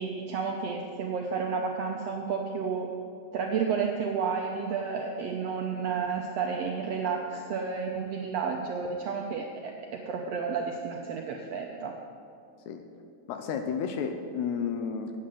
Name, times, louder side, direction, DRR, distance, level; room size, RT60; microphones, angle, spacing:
voice 1, 0.0-2.9 3.3-11.9, right 5 dB, 80° right, 2 dB, 1.4 m, -31 dB
voice 2, 13.3-15.1, left 6 dB, 75° left, 6 dB, 1.9 m, -32 dB
9.2 x 7.5 x 7.8 m, 2.4 s
omnidirectional pair, 3.7 m